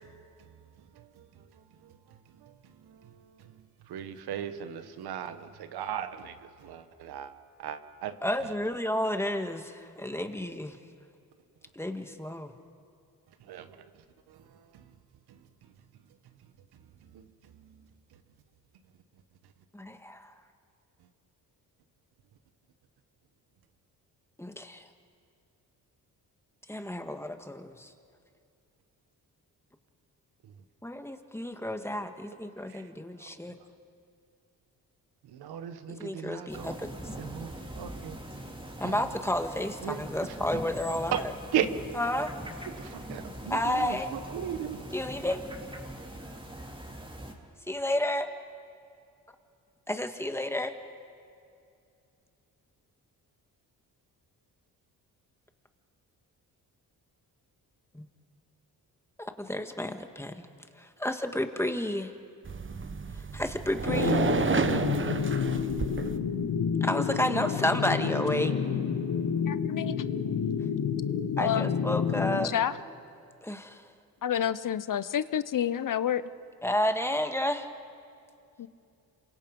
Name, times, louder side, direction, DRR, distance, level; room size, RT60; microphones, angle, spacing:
voice 1, 2.8-3.5 3.9-7.3 7.6-8.1 8.4-8.6 13.5-13.8 14.3-14.4 14.7-14.8 17.1-17.2 32.7-32.9 33.2-33.3 35.2-36.8 37.2-38.2 38.8-39.1 39.8-40.3 41.1-41.2 41.5-41.7 42.8-44.8, right 10 dB, 85° right, 1.3 m, -36 dB
voice 2, 8.2-10.7 11.8-12.5 19.7-20.3 24.4-24.8 26.7-27.9 30.8-33.6 36.0-37.1 38.8-41.3 41.9-42.3 43.5-44.1 44.9-45.4 47.7-48.3 49.9-50.8 57.9-58.0 59.2-60.5 61.0-62.1 63.3-64.3 66.8-68.5 71.4-72.5 73.4-73.8 76.6-77.7, left 1 dB, 5° left, 1.8 m, -31 dB
sound 1, 36.5-47.3, right 1 dB, 15° right, 3.5 m, -42 dB
sound 2, 62.4-66.2, right 4 dB, 30° right, 1.2 m, -30 dB
sound 3, 63.9-72.5, left 7 dB, 75° left, 1.6 m, -29 dB
voice 3, 69.5-70.0 71.4-71.7 72.4-72.8 74.2-76.2 78.6-78.7, left 10 dB, 55° left, 0.8 m, -29 dB
27.5 x 24.5 x 5.4 m
cardioid pair, 70°, 37 cm